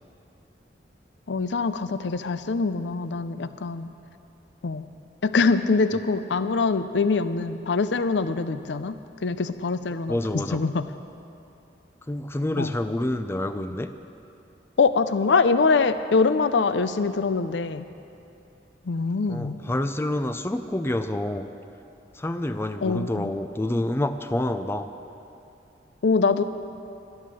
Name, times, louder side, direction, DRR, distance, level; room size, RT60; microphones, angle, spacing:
voice 1, 1.3-3.9 4.6-4.9 5.2-10.2 10.5-10.9 12.6-12.7 14.8-17.9 18.9-19.6 22.8-23.3 26.0-26.4, left 4 dB, 75° left, 12 dB, 0.5 m, -24 dB
voice 2, 10.1-10.6 12.1-13.9 19.3-21.5 22.1-24.9, left 1 dB, 15° left, 9 dB, 0.4 m, -28 dB
12.0 x 11.0 x 7.5 m, 2.7 s
head